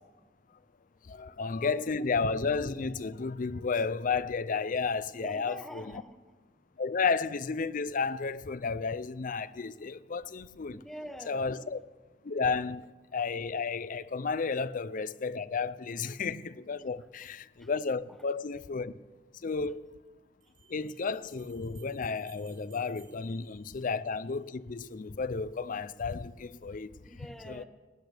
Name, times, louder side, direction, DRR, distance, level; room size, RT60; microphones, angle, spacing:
voice 1, 1.0-5.8 6.8-10.8 11.3-11.8 12.2-19.0 19.4-19.9 20.7-26.9 27.4-27.6, left 4 dB, 45° left, 0.5 m, -32 dB
voice 2, 5.2-6.2 10.7-11.5 27.0-27.6, equal, ahead, 1.0 m, -45 dB
Bell, 20.4-24.3, right 8 dB, 70° right, 3.8 m, -62 dB
18.5 x 18.0 x 3.4 m
head